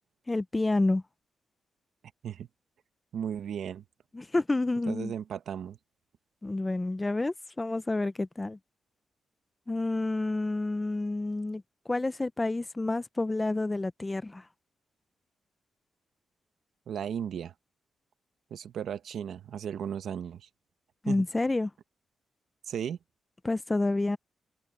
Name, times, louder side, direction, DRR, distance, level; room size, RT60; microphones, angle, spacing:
voice 1, 0.3-1.0 4.1-5.1 6.4-8.6 9.7-11.6 11.9-14.4 21.0-21.7 23.4-24.2, left 2 dB, 20° left, 0.6 m, -29 dB
voice 2, 3.1-3.8 4.9-5.8 16.9-17.5 18.5-20.5 21.1-21.2 22.7-23.0, right 8 dB, 80° right, 1.1 m, -35 dB
cardioid pair, 105°, 0 cm